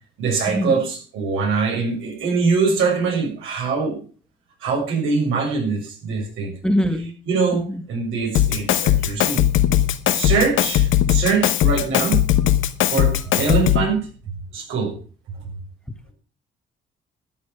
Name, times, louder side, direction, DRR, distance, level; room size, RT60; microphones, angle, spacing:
voice 1, 0.2-4.0 4.6-6.6 6.9-9.4 10.1-12.2 12.9-14.9 15.3-15.6, right 5 dB, 90° right, 7.0 m, -23 dB
voice 2, 6.6-7.1 7.5-7.6, equal, 5° left, 1.7 m, -21 dB
Drum kit, 8.3-14.0, left 12 dB, 75° left, 1.2 m, -19 dB
13.0 x 9.4 x 6.1 m
cardioid pair, 90°, 20 cm